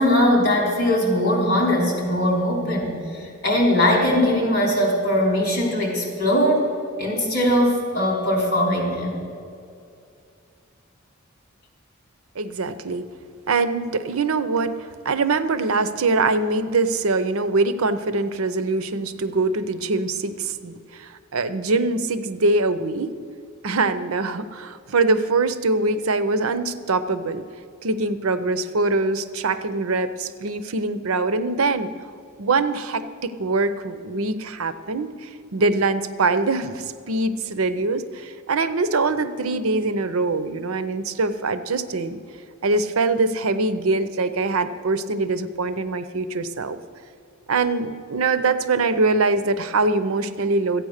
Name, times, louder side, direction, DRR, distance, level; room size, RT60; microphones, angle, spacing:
voice 1, 0.0-6.6 7.0-9.1, left 1 dB, 50° left, 0 dB, 3.5 m, -20 dB
voice 2, 12.4-13.1 13.5-14.7 15.0-23.2 23.6-27.4 27.8-31.9 32.4-42.2 42.6-46.8 47.5-50.8, right 3 dB, 90° right, 12 dB, 0.7 m, -23 dB
13.5 x 9.1 x 6.5 m, 2.4 s
head